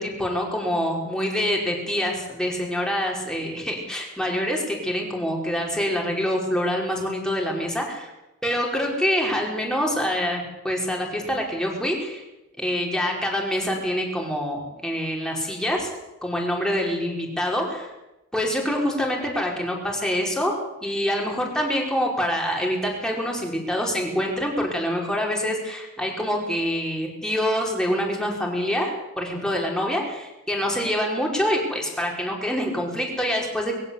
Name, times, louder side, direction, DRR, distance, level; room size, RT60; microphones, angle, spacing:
voice 1, 0.0-8.1 8.4-12.2 12.6-15.9 16.2-17.9 18.3-33.8, equal, 5° left, -1 dB, 5.1 m, -26 dB
22.0 x 16.0 x 8.4 m, 0.98 s
head